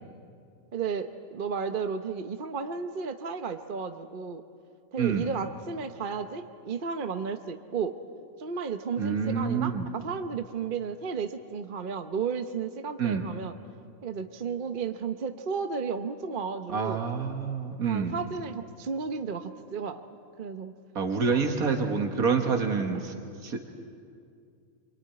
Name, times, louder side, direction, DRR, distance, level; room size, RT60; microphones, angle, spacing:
voice 1, 0.7-4.4 4.9-7.9 8.4-13.6 14.0-17.0 17.8-20.0 20.4-20.7 21.3-21.4, right 5 dB, 40° right, 8 dB, 1.0 m, -33 dB
voice 2, 5.0-5.3 9.0-9.9 13.0-13.2 16.7-18.2 21.0-23.2 23.4-23.6, right 5 dB, 90° right, 4 dB, 2.0 m, -27 dB
27.0 x 22.5 x 9.5 m, 2.4 s
omnidirectional pair, 1.5 m